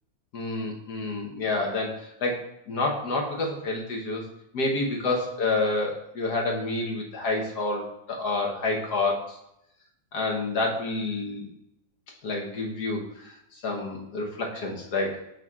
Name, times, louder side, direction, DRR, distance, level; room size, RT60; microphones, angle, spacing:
voice 1, 0.3-4.2 4.5-9.4 10.1-11.5 12.2-15.2, left 2 dB, 55° left, 0 dB, 1.4 m, -29 dB
6.3 x 6.2 x 2.4 m, 0.82 s
omnidirectional pair, 2.2 m